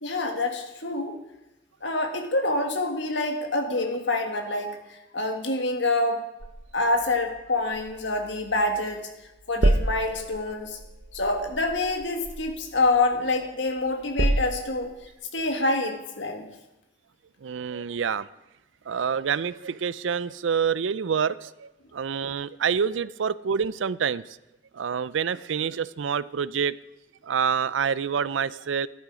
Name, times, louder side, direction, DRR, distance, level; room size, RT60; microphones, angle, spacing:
voice 1, 0.0-1.2 1.8-6.2 6.7-9.1 9.5-10.8 11.1-14.9 15.3-16.5, left 2 dB, 75° left, 4 dB, 1.9 m, -26 dB
sound 1, 6.4-9.0 9.2-13.5 13.9-15.1, right 1 dB, 50° right, 0.7 m, -30 dB
voice 2, 17.4-18.3 18.9-24.2 24.7-26.8 27.2-28.9, right 6 dB, 85° right, 18 dB, 0.4 m, -27 dB
14.5 x 11.5 x 5.0 m, 0.94 s
head